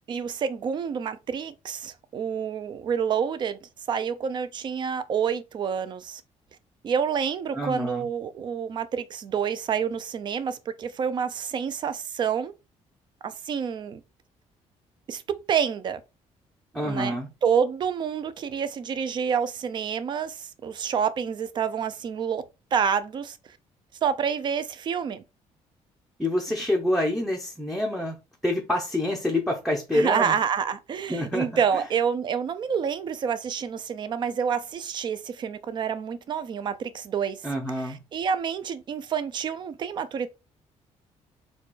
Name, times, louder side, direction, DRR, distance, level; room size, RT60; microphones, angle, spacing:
voice 1, 0.1-3.6 3.9-6.2 6.8-12.5 13.2-14.0 15.1-15.2 15.5-16.0 16.8-22.4 22.7-23.4 24.0-25.2 29.9-37.5 37.8-40.3, right 7 dB, 40° right, 0.5 m, -28 dB
voice 2, 7.5-8.0 16.7-17.3 26.2-28.2 28.4-30.3 31.1-31.8 37.4-38.0, left 1 dB, ahead, 0.6 m, -27 dB
4.2 x 2.3 x 4.4 m
cardioid pair, 165°, 12 cm